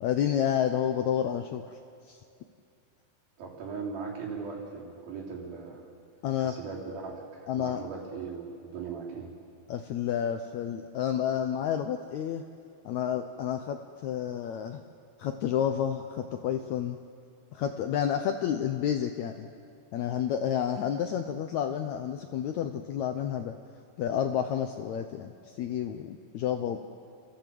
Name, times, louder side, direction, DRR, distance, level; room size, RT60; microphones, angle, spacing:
voice 1, 0.0-1.6 2.1-2.2 6.2-6.6 7.5-7.8 9.7-12.4 12.8-14.8 15.2-17.0 17.5-19.5 19.9-23.6 24.0-26.8, left 9 dB, 75° left, 7 dB, 1.7 m, -30 dB
voice 2, 3.4-5.9 6.4-9.3, right 5 dB, 90° right, -3 dB, 5.3 m, -39 dB
29.0 x 14.5 x 7.7 m, 2.4 s
omnidirectional pair, 4.1 m